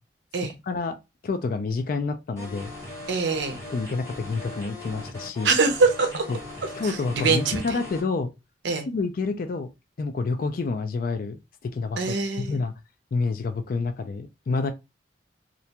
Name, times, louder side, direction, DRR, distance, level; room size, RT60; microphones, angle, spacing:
voice 1, 0.4-1.0 1.2-2.7 3.7-5.6 6.3-6.4 6.8-8.3 8.9-9.7 10.0-12.7 13.1-14.7, left 4 dB, 50° left, 0.3 m, -28 dB
sound 1, 2.4-8.0, left 2 dB, 15° left, 1.0 m, -40 dB
voice 2, 3.1-3.6 5.4-6.3 6.8-7.8 8.6-8.9 12.0-12.6, right 4 dB, 70° right, 0.6 m, -23 dB
2.5 x 2.2 x 2.8 m
head